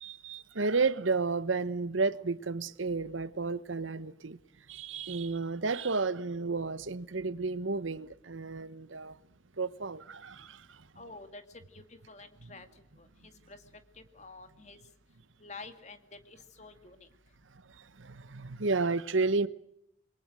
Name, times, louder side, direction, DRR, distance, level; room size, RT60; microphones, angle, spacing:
voice 1, 0.0-4.4 4.7-9.2 9.6-10.8 12.4-12.5 17.7-19.5, right 4 dB, 80° right, 1.1 m, -32 dB
voice 2, 11.0-11.4 11.7-12.7 13.0-13.6 14.0-14.8 15.4-17.1, left 3 dB, 35° left, 2.2 m, -49 dB
28.0 x 22.5 x 6.3 m
head